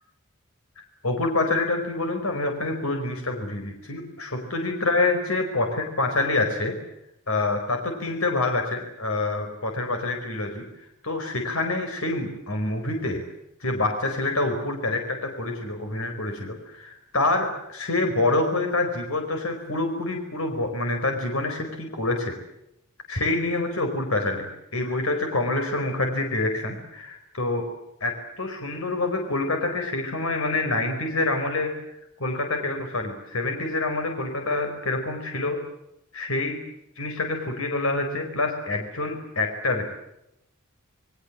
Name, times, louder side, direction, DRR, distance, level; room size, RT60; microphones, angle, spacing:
voice 1, 0.8-6.7 7.3-13.2 13.6-22.3 23.1-27.7 28.0-31.8 32.2-35.6 36.1-36.6 37.0-39.9, left 2 dB, 75° left, 4 dB, 4.8 m, -27 dB
28.5 x 22.0 x 7.4 m, 0.86 s
head